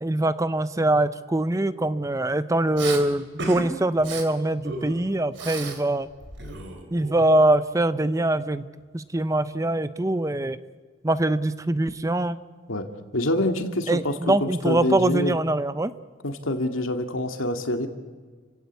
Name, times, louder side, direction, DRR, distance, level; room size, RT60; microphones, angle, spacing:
voice 1, 0.0-6.1 6.9-8.7 8.9-10.6 11.0-12.4 13.9-15.9, right 1 dB, 15° right, 14 dB, 0.6 m, -23 dB
Respiratory sounds, 2.8-3.0 3.4-3.7 4.0-4.2 4.6-5.8 6.1-7.5, right 3 dB, 60° right, 3.1 m, -35 dB
voice 2, 13.1-15.4 16.2-17.9, left 1 dB, 80° left, 6 dB, 2.2 m, -26 dB
30.0 x 16.5 x 8.3 m, 1.5 s
head